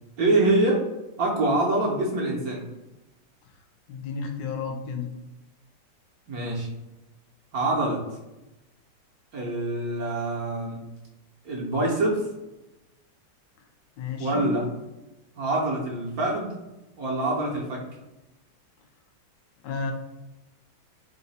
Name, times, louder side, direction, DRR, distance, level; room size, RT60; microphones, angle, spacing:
voice 1, 0.2-0.9 1.2-2.6 6.3-6.7 7.5-8.0 9.3-10.8 11.4-12.3 14.2-14.7 15.4-16.5 17.0-17.8, right 2 dB, 65° right, -2 dB, 1.0 m, -25 dB
voice 2, 3.9-5.1 14.0-14.5 19.6-19.9, left 5 dB, 75° left, 3 dB, 1.3 m, -32 dB
3.9 x 2.2 x 3.9 m, 0.98 s
omnidirectional pair, 2.0 m